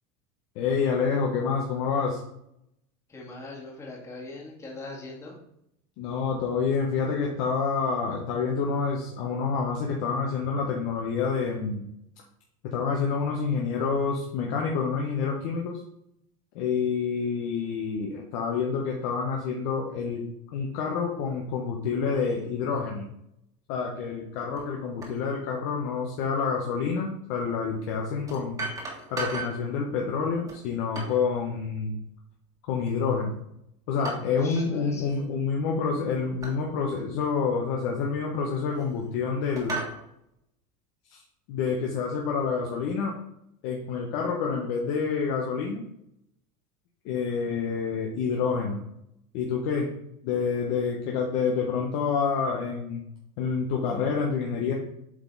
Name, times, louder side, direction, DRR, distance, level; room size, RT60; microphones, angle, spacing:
voice 1, 0.5-2.2 6.0-11.8 12.7-15.8 16.5-20.2 20.5-23.0 23.7-28.6 29.1-32.0 32.6-33.4 33.9-39.8 41.1-41.2 41.5-43.2 43.6-45.8 47.0-48.8 49.3-49.9 50.2-53.0 53.4-54.7, left 5 dB, 60° left, -1 dB, 1.1 m, -28 dB
voice 2, 3.1-5.4 34.2-35.1, left 2 dB, 15° left, -2 dB, 1.9 m, -41 dB
sound 1, 24.6-24.7 25.0-25.2 27.0-27.1 28.3-29.6 30.5-31.3 32.9-33.3 34.0-34.7 34.9-35.2 36.4-36.6 37.2-37.3 38.3-39.1 39.6-40.0, right 3 dB, 20° right, 1.7 m, -36 dB
7.8 x 3.9 x 4.0 m, 0.77 s
supercardioid pair, 145°, 17 cm